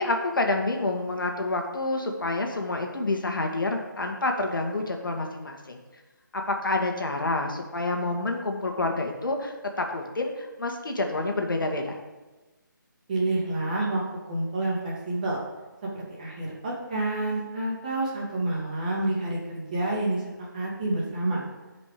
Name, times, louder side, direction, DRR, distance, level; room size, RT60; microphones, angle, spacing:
voice 1, 0.0-5.8 6.3-12.0, left 2 dB, 75° left, 3 dB, 1.8 m, -28 dB
voice 2, 13.1-14.0 14.3-15.4 16.1-20.2 20.5-21.4, right 2 dB, 25° right, -4 dB, 2.3 m, -28 dB
12.0 x 5.3 x 5.0 m, 1.2 s
figure-of-eight pair, 170°, 11 cm